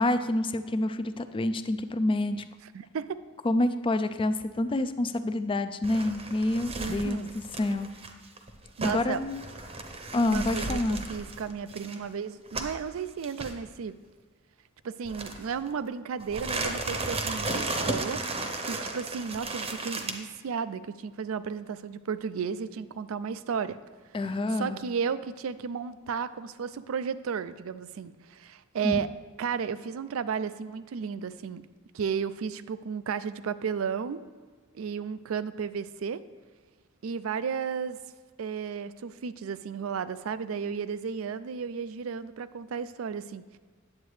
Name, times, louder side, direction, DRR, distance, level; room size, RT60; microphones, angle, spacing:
voice 1, 0.0-2.4 3.4-7.9 8.8-9.4 10.1-11.0 24.1-24.8 28.8-29.0, left 1 dB, 25° left, 11 dB, 0.4 m, -27 dB
voice 2, 2.7-3.2 6.8-7.3 8.8-9.2 10.3-14.0 14.8-18.2 18.6-23.8 24.5-29.1 29.4-31.7 31.9-34.2 34.7-36.2 37.0-38.0 38.4-43.6, right 6 dB, 75° right, 14 dB, 0.4 m, -33 dB
sound 1, 5.8-12.9 13.2-13.5 15.1-15.7 16.2-20.1, right 2 dB, 30° right, 0.8 m, -35 dB
9.4 x 7.8 x 3.2 m, 1.5 s
head